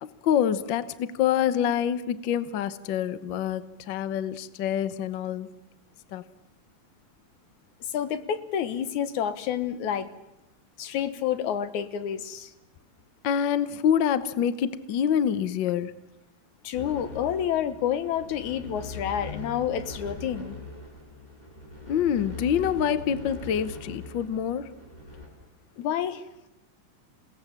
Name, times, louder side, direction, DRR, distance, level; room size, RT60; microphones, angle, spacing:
voice 1, 0.0-5.5 6.1-6.2 13.2-15.9 21.9-24.7, left 9 dB, 65° left, 1.2 m, -26 dB
voice 2, 7.9-10.1 10.8-12.5 16.6-20.6 25.8-26.2, left 9 dB, 85° left, 2.6 m, -29 dB
sound 1, 16.7-25.3, left 1 dB, 15° left, 5.2 m, -41 dB
28.5 x 18.5 x 7.4 m
omnidirectional pair, 3.4 m